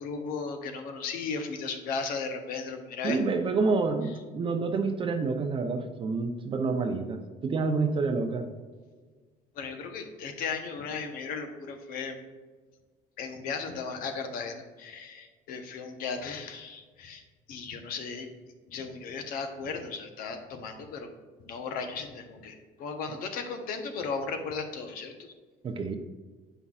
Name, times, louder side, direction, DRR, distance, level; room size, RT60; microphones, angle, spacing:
voice 1, 0.0-3.2 9.5-12.2 13.2-17.2 17.5-18.3 18.7-21.1 21.5-25.1, left 5 dB, 65° left, 6 dB, 1.0 m, -36 dB
voice 2, 3.0-8.5 25.6-26.0, right 4 dB, 35° right, 5 dB, 0.6 m, -28 dB
8.1 x 5.5 x 2.4 m, 1.4 s
cardioid pair, 110°, 16 cm